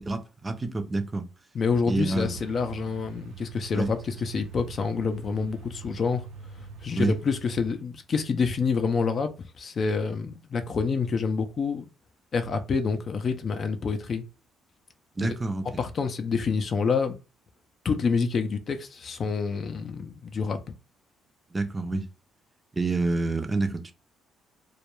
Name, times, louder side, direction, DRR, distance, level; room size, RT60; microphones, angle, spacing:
voice 1, 0.1-1.3 1.9-2.3 3.7-3.9 7.0-7.2 15.2-15.8 21.5-22.1 22.7-23.9, right 3 dB, 20° right, 0.5 m, -27 dB
voice 2, 1.5-6.3 6.8-11.9 12.3-14.2 15.2-15.3 15.8-17.2 17.8-20.6, left 5 dB, 45° left, 0.4 m, -27 dB
Truck, 2.1-7.7, right 5 dB, 85° right, 0.6 m, -44 dB
2.3 x 2.1 x 3.0 m
cardioid pair, 95°, 0 cm